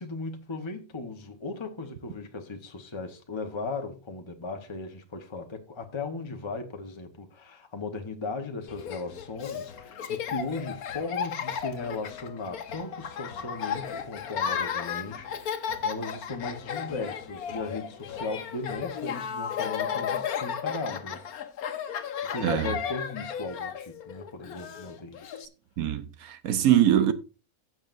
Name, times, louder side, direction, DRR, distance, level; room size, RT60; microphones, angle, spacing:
voice 1, 0.0-21.2 22.2-25.4, left 3 dB, 20° left, 1.0 m, -37 dB
Laughter, 8.7-25.5, left 8 dB, 85° left, 1.4 m, -34 dB
voice 2, 25.8-27.1, right 11 dB, 80° right, 1.3 m, -23 dB
15.0 x 7.6 x 2.6 m
omnidirectional pair, 1.5 m